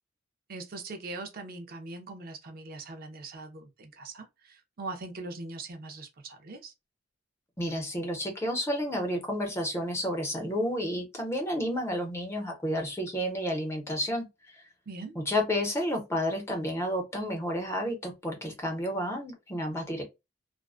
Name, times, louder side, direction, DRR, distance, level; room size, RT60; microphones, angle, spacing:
voice 1, 0.5-6.7 14.9-15.1, right 3 dB, 50° right, 0.4 m, -41 dB
voice 2, 7.6-14.6 15.2-20.0, equal, 15° left, 0.6 m, -31 dB
2.5 x 2.1 x 2.3 m
head